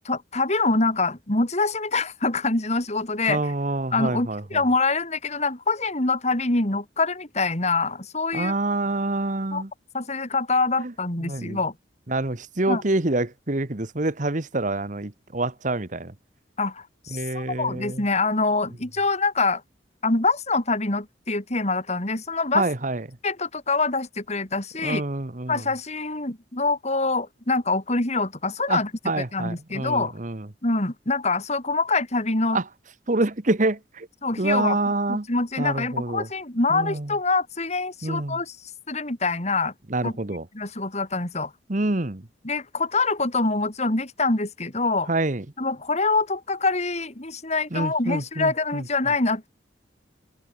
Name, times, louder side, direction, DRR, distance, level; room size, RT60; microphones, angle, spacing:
voice 1, 0.0-3.4 3.9-8.5 9.5-9.6 9.9-11.7 12.7-12.8 16.6-19.6 20.0-22.7 23.2-25.0 25.5-28.9 29.3-30.1 30.6-32.6 34.2-34.8 35.1-38.6 38.9-39.7 40.0-40.1 40.5-41.5 42.4-45.1 45.6-49.5, left 3 dB, 40° left, 3.2 m, -25 dB
voice 2, 3.3-4.6 8.3-9.7 10.8-10.9 11.2-11.6 12.1-16.1 17.1-18.0 22.5-23.1 24.8-25.6 28.7-30.5 32.5-32.6 33.1-34.1 34.4-35.3 35.6-36.3 36.7-37.1 38.0-38.4 39.9-40.4 41.7-42.3 45.1-45.4 47.7-48.8, right 2 dB, 45° right, 1.4 m, -26 dB
head